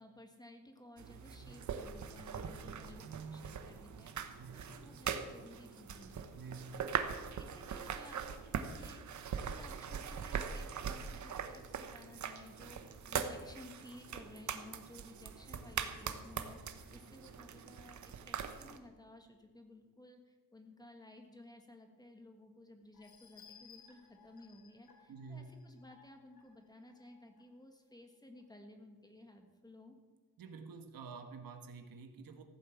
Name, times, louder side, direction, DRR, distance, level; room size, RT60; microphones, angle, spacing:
voice 1, 0.0-6.3 6.7-29.9, left 1 dB, 10° left, 4 dB, 1.6 m, -56 dB
sound 1, 1.0-18.8, right 7 dB, 50° right, 1.1 m, -42 dB
voice 2, 2.4-2.8 4.3-4.6 6.3-6.8 25.1-25.5 30.4-32.4, right 5 dB, 65° right, 6 dB, 1.6 m, -49 dB
sound 2, 22.9-27.4 27.9-28.0 28.4-28.5, left 7 dB, 75° left, 2.7 m, -62 dB
15.0 x 8.9 x 7.3 m, 1.3 s
wide cardioid pair, 155°, 36 cm